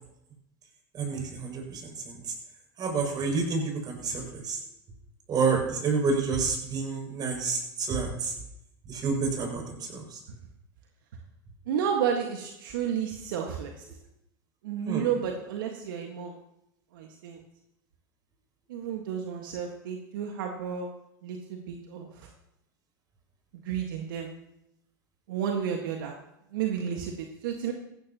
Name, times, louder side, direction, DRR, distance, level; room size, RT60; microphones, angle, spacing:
voice 1, 1.0-1.8 2.8-4.6 5.3-8.3 8.9-9.6 9.9-10.0 14.9-15.0, right 4 dB, 40° right, 1 dB, 6.6 m, -28 dB
voice 2, 11.7-13.8 14.6-16.3 16.9-17.4 18.7-20.9 21.2-22.3 23.6-24.3 25.3-26.1 26.5-27.7, right 8 dB, 75° right, 2 dB, 1.7 m, -31 dB
17.5 x 15.0 x 3.0 m, 0.81 s
hypercardioid pair, 100°, 11 cm